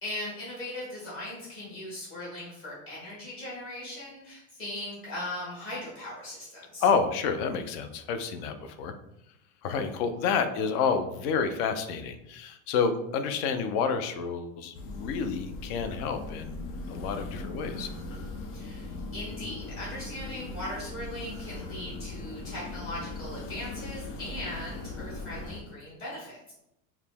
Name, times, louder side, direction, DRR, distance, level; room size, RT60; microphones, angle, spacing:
voice 1, 0.0-6.8 18.5-26.5, left 1 dB, 30° left, -7 dB, 1.3 m, -39 dB
voice 2, 6.8-8.9 9.6-17.9, left 6 dB, 50° left, 8 dB, 0.5 m, -29 dB
sound 1, 14.7-25.6, left 2 dB, 90° left, 0.8 m, -39 dB
4.7 x 2.1 x 3.5 m, 0.83 s
cardioid pair, 165°, 41 cm